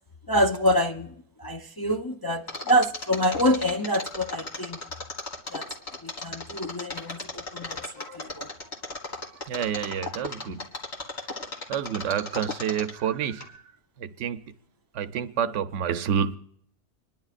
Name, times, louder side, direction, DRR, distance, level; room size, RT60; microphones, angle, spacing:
voice 1, 0.3-4.8 5.5-5.7 6.0-8.5 10.5-10.6, equal, 40° left, 0.3 m, -26 dB
Mechanisms, 2.5-13.1 13.4-13.5, left 2 dB, 70° left, 2.2 m, -35 dB
voice 2, 9.5-10.6 11.7-13.5 14.0-14.4 14.9-16.4, right 8 dB, 85° right, 1.0 m, -28 dB
27.0 x 11.0 x 2.5 m
omnidirectional pair, 1.2 m